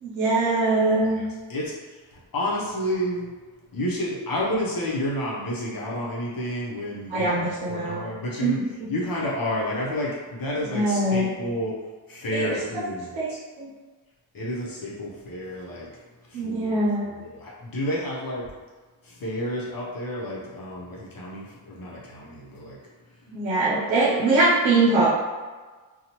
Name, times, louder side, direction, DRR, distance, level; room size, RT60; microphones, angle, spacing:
voice 1, 0.0-1.2 7.1-8.0 8.4-8.5 10.6-11.3 12.3-12.8 13.1-13.3 13.6-13.7 16.3-17.2 23.3-25.1, right 2 dB, 90° right, -6 dB, 0.7 m, -22 dB
voice 2, 1.1-3.3 3.7-8.6 8.9-11.8 12.1-13.4 14.3-16.0 16.3-18.5 19.0-22.8, equal, 50° left, -5 dB, 0.9 m, -30 dB
2.7 x 2.3 x 2.9 m, 1.3 s
supercardioid pair, 40°, 45 cm